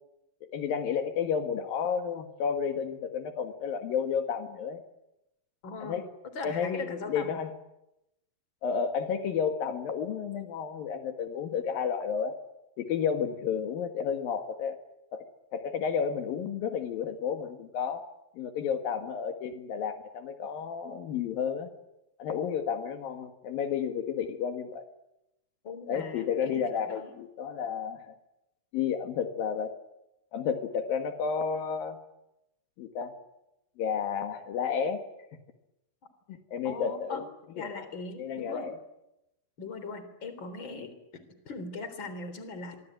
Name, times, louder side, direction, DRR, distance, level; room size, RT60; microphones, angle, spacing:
voice 1, 0.4-4.8 5.8-6.0 6.4-7.5 8.6-12.3 12.8-14.8 15.1-15.2 15.5-18.0 18.4-21.7 22.2-24.9 25.9-28.2 28.7-29.8 30.3-32.0 32.8-33.2 33.8-35.0 36.3-37.2 37.6-37.8 38.2-38.8, left 7 dB, 75° left, 7 dB, 3.5 m, -31 dB
voice 2, 5.6-6.0 6.3-7.4 25.6-27.1 36.6-37.3 37.6-38.7 39.6-42.8, left 3 dB, 35° left, 10 dB, 4.2 m, -40 dB
27.0 x 24.0 x 9.2 m, 0.88 s
omnidirectional pair, 4.1 m